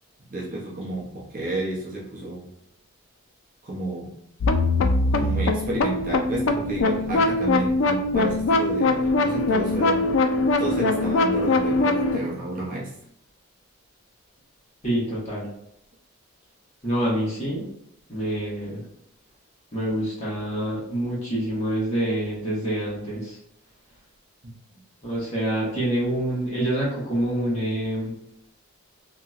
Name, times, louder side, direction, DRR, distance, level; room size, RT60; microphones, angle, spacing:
voice 1, 0.3-2.5 3.6-4.1 5.1-10.1 10.6-12.9 24.4-24.5, right 2 dB, 40° right, -4 dB, 0.6 m, -31 dB
sound 1, 4.4-12.2, left 2 dB, 65° left, 0.3 m, -22 dB
voice 2, 14.8-15.5 16.8-17.7 18.1-18.8 19.7-23.4 25.0-28.1, right 1 dB, 30° left, -8 dB, 1.4 m, -26 dB
2.9 x 2.9 x 2.4 m, 0.74 s
head